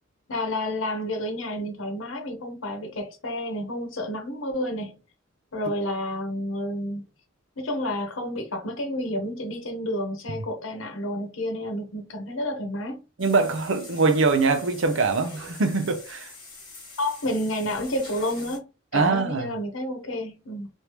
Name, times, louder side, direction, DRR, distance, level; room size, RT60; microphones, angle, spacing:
voice 1, 0.3-5.0 5.5-7.0 7.6-13.0 17.0-18.6 18.9-20.7, left 1 dB, 70° left, 1.0 m, -30 dB
sound 1, 13.2-18.6, left 3 dB, 25° left, 1.4 m, -45 dB
voice 2, 13.2-16.3 18.9-19.5, right 4 dB, 65° right, 0.6 m, -23 dB
3.3 x 2.7 x 2.9 m
head